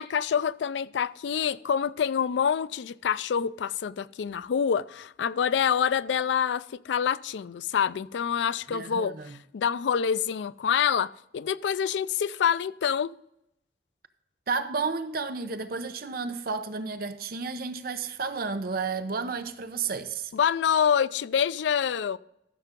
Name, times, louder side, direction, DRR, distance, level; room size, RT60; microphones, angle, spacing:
voice 1, 0.0-13.1 20.3-22.2, left 7 dB, 90° left, 0.4 m, -26 dB
voice 2, 8.7-9.4 14.5-20.3, right 4 dB, 55° right, 0.7 m, -32 dB
13.5 x 6.8 x 3.7 m
head